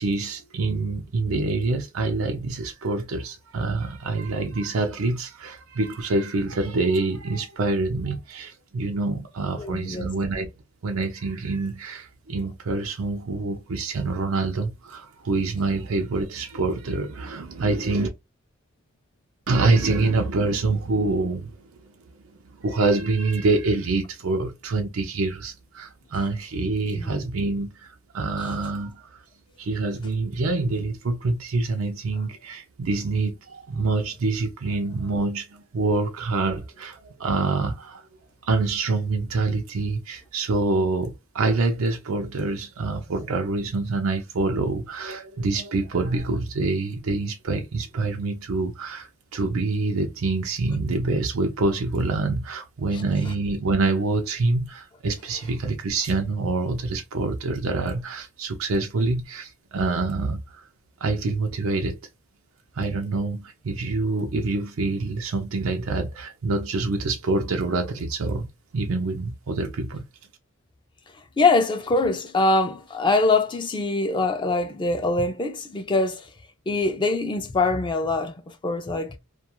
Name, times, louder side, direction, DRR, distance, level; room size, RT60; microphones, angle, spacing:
voice 1, 0.0-10.5 10.8-18.1 19.5-21.5 22.6-27.7 28.1-29.1 29.6-38.0 38.4-60.6 61.0-62.0 62.8-68.5 68.7-70.0, right 3 dB, 90° right, 0.5 m, -26 dB
voice 2, 9.5-10.1 27.0-27.2 28.4-28.5 52.9-53.0 71.4-76.3 76.7-79.2, left 3 dB, 25° left, 0.4 m, -23 dB
2.3 x 2.2 x 2.9 m
head